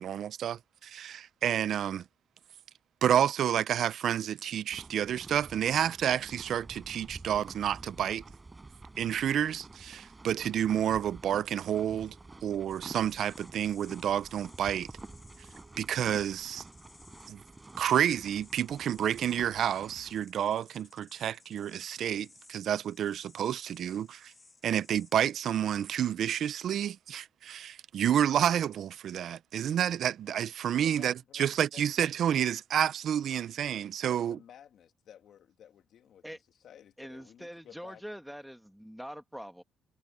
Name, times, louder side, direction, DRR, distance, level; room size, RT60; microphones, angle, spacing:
voice 1, 0.0-2.0 3.0-8.2 9.0-12.1 12.4-14.9 15.8-16.6 17.3-17.4 17.8-24.3 24.6-34.4, right 10 dB, 70° right, 0.6 m, -29 dB
sound 1, 4.7-20.3, right 3 dB, 20° right, 7.4 m, -49 dB
sound 2, 12.7-25.3, left 3 dB, 25° left, 3.6 m, -60 dB
voice 2, 30.8-31.8 34.0-38.0, left 9 dB, 70° left, 2.6 m, -55 dB
voice 3, 37.0-39.6, equal, ahead, 1.9 m, -44 dB
cardioid pair, 90°, 0 cm